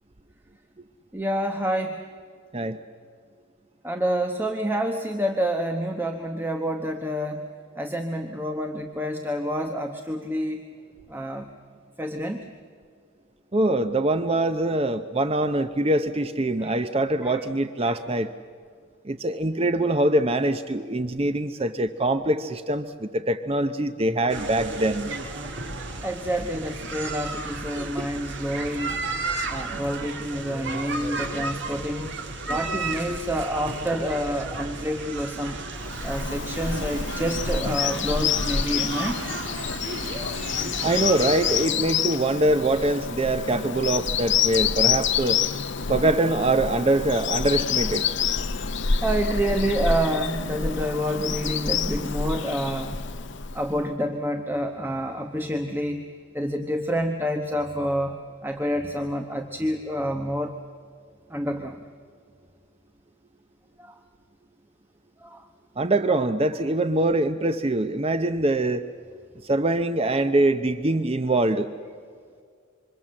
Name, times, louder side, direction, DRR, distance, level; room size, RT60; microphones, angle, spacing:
voice 1, 1.1-2.1 3.8-7.5 7.8-10.6 11.1-11.5 12.0-12.5 16.6-16.8 17.2-17.4 17.8-18.0 26.0-29.0 29.5-32.1 32.5-35.6 36.0-39.2 49.0-52.9 53.5-56.1 56.3-60.6 61.3-61.8 63.8-64.0 65.2-65.5, equal, 10° right, 5 dB, 1.0 m, -28 dB
voice 2, 13.5-18.3 19.0-25.1 40.8-45.4 45.9-48.1 65.8-68.9 69.4-71.7, right 2 dB, 25° right, 9 dB, 0.6 m, -23 dB
sound 1, 24.3-41.7, right 3 dB, 55° right, 2.0 m, -33 dB
Bird vocalization bird call bird song, 35.8-53.8, left 6 dB, 55° left, 0.8 m, -27 dB
27.0 x 25.5 x 7.6 m, 2.1 s
head